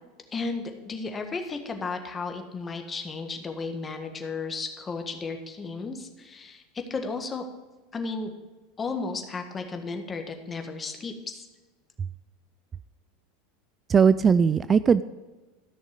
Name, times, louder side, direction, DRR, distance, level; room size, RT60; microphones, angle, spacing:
voice 1, 0.3-6.6 6.9-7.5 7.9-8.3 8.8-11.5, left 4 dB, 25° left, 5 dB, 1.6 m, -34 dB
voice 2, 13.9-15.0, right 6 dB, 30° right, 16 dB, 0.3 m, -19 dB
14.0 x 6.4 x 5.2 m, 1.3 s
hypercardioid pair, 85°, 0 cm